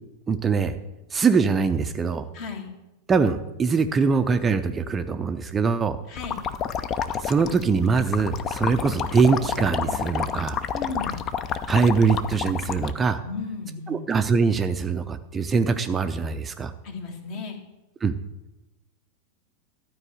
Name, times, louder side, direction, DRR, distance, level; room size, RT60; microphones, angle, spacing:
voice 1, 0.3-0.7 1.1-2.3 3.1-6.0 7.2-10.6 11.7-13.2 13.9-16.7 18.0-18.1, right 5 dB, 20° right, 9 dB, 0.5 m, -23 dB
voice 2, 2.3-2.7 6.1-6.4 10.7-11.2 13.2-14.1 16.8-17.6, left 4 dB, 45° left, 3 dB, 1.8 m, -34 dB
sound 1, 6.2-12.9, left 7 dB, 30° left, 0.6 m, -29 dB
12.5 x 4.6 x 7.8 m, 0.98 s
figure-of-eight pair, 90°, 0 cm